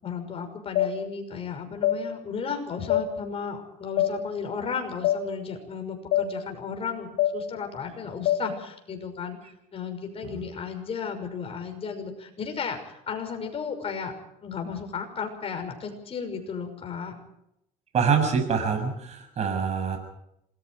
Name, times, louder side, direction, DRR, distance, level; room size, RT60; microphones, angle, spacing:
voice 1, 0.0-9.4 9.7-14.1 14.4-17.2, left 6 dB, 40° left, 5 dB, 6.0 m, -34 dB
sound 1, 0.8-0.9 1.8-2.0 2.9-3.1 4.0-4.1 5.0-5.2 6.1-6.3 7.2-7.3 8.3-8.4, left 13 dB, 85° left, 4.4 m, -22 dB
voice 2, 17.9-20.0, right 6 dB, 45° right, 6 dB, 7.0 m, -25 dB
27.0 x 20.0 x 4.8 m, 0.80 s
cardioid pair, 115°, 15 cm